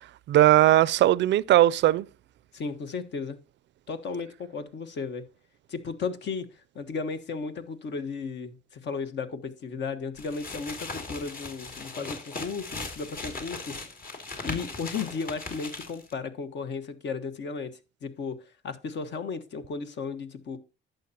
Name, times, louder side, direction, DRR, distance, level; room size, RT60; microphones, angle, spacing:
voice 1, 0.3-2.1, right 14 dB, 65° right, 0.4 m, -19 dB
voice 2, 2.5-3.4 3.9-5.2 5.7-6.5 6.7-13.8 14.4-17.7 18.0-18.4 18.6-20.6, left 5 dB, 65° left, 1.3 m, -34 dB
sound 1, 10.2-16.1, left 3 dB, 45° left, 2.5 m, -38 dB
11.5 x 7.9 x 2.8 m
cardioid pair, 90°, 20 cm